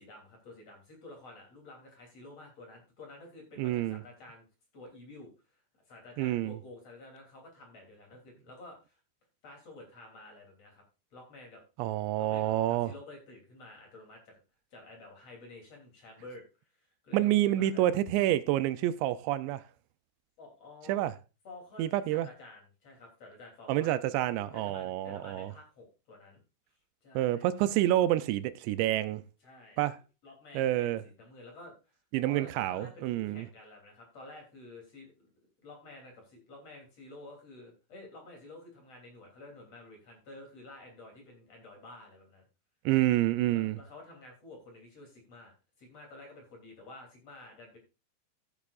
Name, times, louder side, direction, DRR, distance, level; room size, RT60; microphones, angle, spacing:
voice 1, 0.0-4.5 4.7-9.0 9.4-10.8 11.1-11.6 12.2-14.4 14.7-17.9 20.4-21.1 21.4-24.0 24.5-26.4 27.0-27.5 29.4-29.8 30.2-35.3 35.6-42.4 43.5-47.8, left 2 dB, 40° left, 3.7 m, -51 dB
voice 2, 3.6-4.0 6.2-6.6 11.8-12.9 17.1-19.6 20.9-21.1 21.8-22.3 23.7-25.5 27.2-29.2 29.8-30.0 30.5-31.0 32.1-33.5 42.9-43.8, right 14 dB, 85° right, 2.8 m, -28 dB
15.5 x 8.4 x 2.5 m
omnidirectional pair, 5.1 m